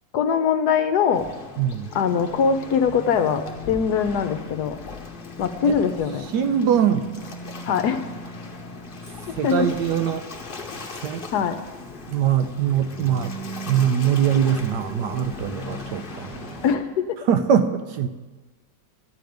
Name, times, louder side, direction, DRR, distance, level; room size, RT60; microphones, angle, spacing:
voice 1, 0.1-1.3 1.9-4.8 5.4-6.3 7.6-8.0 9.4-9.7 11.3-11.6 16.6-17.2, left 7 dB, 70° left, 9 dB, 1.2 m, -22 dB
Waves surf, 1.1-16.7, left 2 dB, 35° left, 1.0 m, -37 dB
voice 2, 1.6-1.9 5.7-5.8 6.3-7.0 9.4-10.2 11.0-11.3 12.1-13.3 13.7-16.3 17.3-18.1, right 8 dB, 75° right, 9 dB, 1.3 m, -22 dB
13.5 x 5.1 x 9.2 m, 1.2 s
omnidirectional pair, 2.0 m